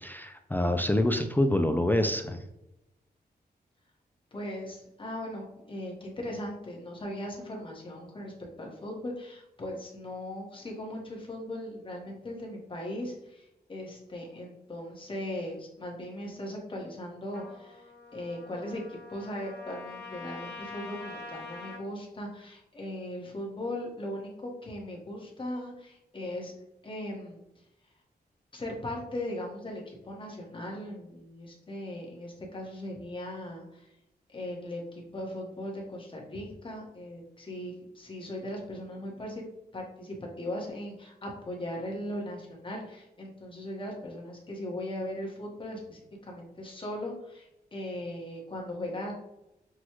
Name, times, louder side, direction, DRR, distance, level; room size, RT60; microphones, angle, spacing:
voice 1, 0.0-2.4, left 1 dB, 10° left, 6 dB, 0.3 m, -26 dB
voice 2, 4.3-17.9 18.1-26.5 26.8-27.4 28.5-33.9 34.3-39.4 39.7-49.1, left 1 dB, 30° left, -1 dB, 1.2 m, -38 dB
Trumpet, 17.3-21.8, left 3 dB, 75° left, 1.1 m, -44 dB
6.0 x 2.3 x 3.0 m, 0.88 s
wide cardioid pair, 105°, 17 cm